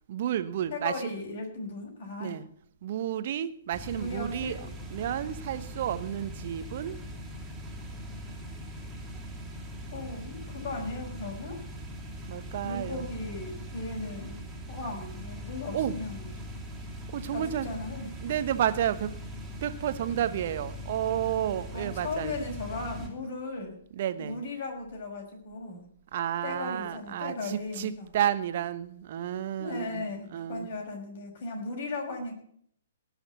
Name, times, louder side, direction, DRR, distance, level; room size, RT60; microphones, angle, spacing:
voice 1, 0.1-1.1 2.2-2.5 2.8-4.6 4.9-7.0 12.3-13.1 15.7-16.0 17.1-17.7 18.0-19.1 19.6-22.3 23.9-24.4 26.1-30.1 30.3-30.7, right 10 dB, 50° right, 12 dB, 1.1 m, -31 dB
voice 2, 0.7-2.4 3.9-4.7 9.9-11.6 12.6-14.4 14.7-16.3 17.3-18.2 21.7-23.8 24.2-25.8 26.4-28.1 29.6-32.4, left 2 dB, 50° left, 1 dB, 6.0 m, -37 dB
sound 1, 3.7-23.1, equal, 10° right, 3.3 m, -41 dB
18.5 x 6.4 x 8.1 m, 0.65 s
figure-of-eight pair, 125°, 0 cm